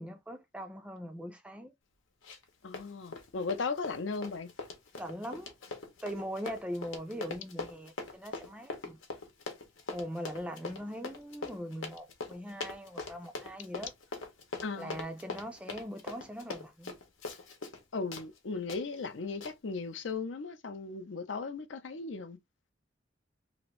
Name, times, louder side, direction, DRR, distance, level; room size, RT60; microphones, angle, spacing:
voice 1, 0.0-1.7 5.0-5.5 6.0-9.0 9.9-13.9 14.8-17.0, equal, 5° right, 0.4 m, -41 dB
Run, 2.2-2.5 2.7-17.8 18.1-18.3 18.7-18.8 19.4-19.5, left 3 dB, 90° left, 0.9 m, -42 dB
voice 2, 2.6-4.5 14.6-15.0 17.9-22.4, left 4 dB, 70° left, 0.5 m, -37 dB
2.9 x 2.5 x 3.0 m
head